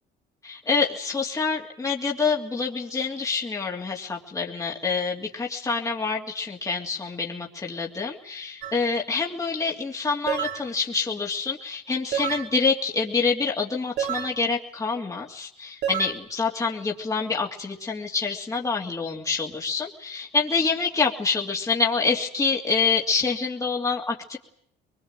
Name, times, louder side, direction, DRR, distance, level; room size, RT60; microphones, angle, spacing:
voice 1, 0.4-24.4, left 4 dB, 20° left, -1 dB, 3.0 m, -26 dB
sound 1, 8.6-8.8 10.3-10.6 12.1-12.5 14.0-14.3 15.8-16.1, right 9 dB, 80° right, 5.7 m, -28 dB
23.0 x 22.0 x 9.1 m, 0.70 s
cardioid pair, 110°, 17 cm